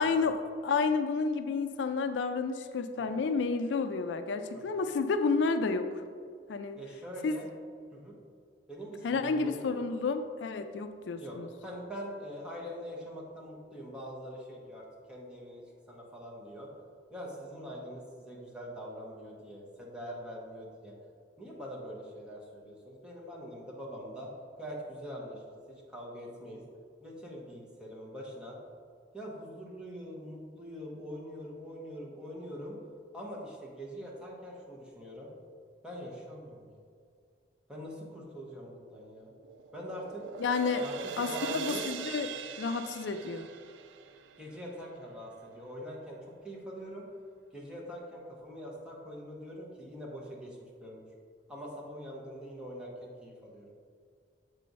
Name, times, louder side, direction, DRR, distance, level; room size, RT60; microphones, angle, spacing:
voice 1, 0.0-6.0 6.5-6.8 7.2-7.3 9.0-11.5 40.4-40.8 41.2-42.3 42.6-43.5, left 4 dB, 75° left, 8 dB, 0.4 m, -30 dB
voice 2, 6.8-7.5 7.9-8.2 8.7-9.7 11.2-16.7 17.1-21.0 21.4-24.3 24.6-26.6 27.0-28.6 29.1-32.8 33.1-35.3 35.8-36.7 37.7-39.3 39.7-40.2 40.8-41.9 44.4-46.2 46.4-47.1 47.5-51.1 51.5-53.7, equal, 5° right, -3 dB, 1.1 m, -43 dB
sound 1, 38.9-45.3, right 6 dB, 90° right, 0.4 m, -42 dB
7.5 x 3.2 x 5.4 m, 2.2 s
head